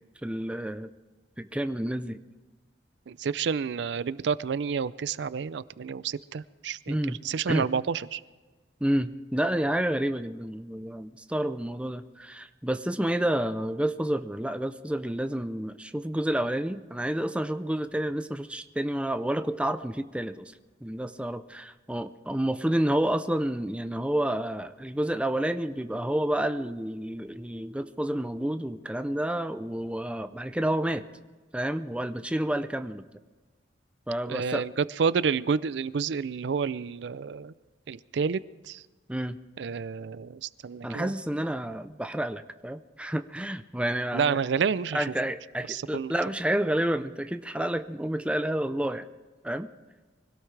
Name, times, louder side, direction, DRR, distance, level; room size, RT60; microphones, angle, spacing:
voice 1, 0.2-0.9 1.4-2.2 6.9-7.2 7.5-7.7 8.8-20.5 20.8-31.0 31.5-33.0 34.1-34.6 39.1-39.4 40.8-44.4 44.9-49.1 49.4-49.7, right 1 dB, 5° right, 9 dB, 0.5 m, -29 dB
voice 2, 3.1-7.0 7.2-8.2 34.3-34.7 35.0-37.5 37.9-38.4 38.7-38.8 39.6-41.1 44.1-45.0 45.7-46.1, right 6 dB, 70° right, 17 dB, 0.4 m, -29 dB
24.5 x 17.0 x 3.3 m, 1.3 s
head